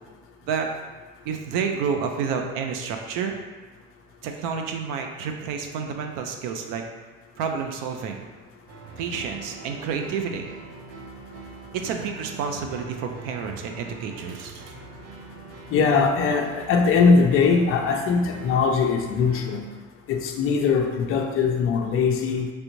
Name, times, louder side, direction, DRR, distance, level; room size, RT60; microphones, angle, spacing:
voice 1, 1.3-3.4 4.2-6.8 7.4-8.3 9.0-10.5 11.7-14.6, right 6 dB, 55° right, 4 dB, 0.4 m, -29 dB
sound 1, 8.7-19.6, right 4 dB, 75° right, 0.8 m, -43 dB
voice 2, 15.7-19.6 20.1-22.5, left 5 dB, 35° left, 3 dB, 0.4 m, -21 dB
3.3 x 2.6 x 3.0 m, 1.4 s
supercardioid pair, 110°, 38 cm